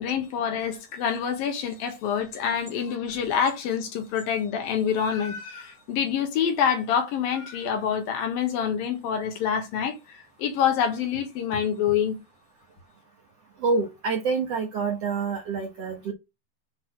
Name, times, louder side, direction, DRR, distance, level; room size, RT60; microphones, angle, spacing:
voice 1, 0.0-10.0 10.4-12.2, left 8 dB, 80° left, 3.4 m, -26 dB
voice 2, 13.6-16.1, right 4 dB, 55° right, 2.0 m, -27 dB
7.7 x 4.2 x 6.3 m
omnidirectional pair, 4.1 m